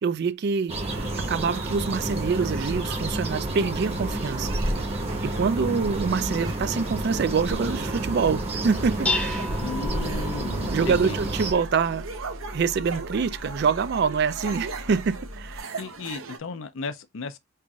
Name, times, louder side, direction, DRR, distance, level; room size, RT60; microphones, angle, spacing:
voice 1, 0.0-0.7 1.3-4.5 5.2-9.5 10.7-12.1 12.5-15.7, right 5 dB, 50° right, 0.3 m, -25 dB
sound 1, 0.7-11.5, right 1 dB, 30° right, 0.9 m, -29 dB
sound 2, 0.9-16.4, right 4 dB, 75° right, 0.7 m, -40 dB
Dishes pots and pans, 8.5-15.6, left 2 dB, 5° left, 0.7 m, -35 dB
voice 2, 9.6-11.2 15.8-17.4, left 4 dB, 70° left, 0.5 m, -35 dB
5.4 x 2.5 x 2.3 m
head